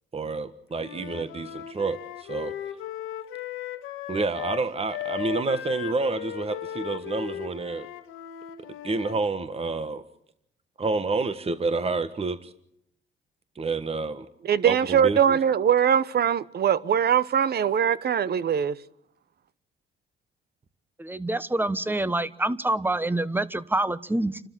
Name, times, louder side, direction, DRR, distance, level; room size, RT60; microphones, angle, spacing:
voice 1, 0.1-2.5 4.1-7.9 8.8-10.0 10.8-12.5 13.5-14.3 14.6-15.4, right 3 dB, 30° right, 1.3 m, -29 dB
Wind instrument woodwind instrument, 0.7-4.6 4.9-9.2, left 11 dB, 90° left, 1.7 m, -37 dB
voice 2, 14.5-18.8, right 8 dB, 50° right, 0.9 m, -22 dB
voice 3, 21.0-24.4, right 2 dB, 10° right, 1.1 m, -26 dB
29.5 x 13.0 x 7.5 m
cardioid pair, 85°, 20 cm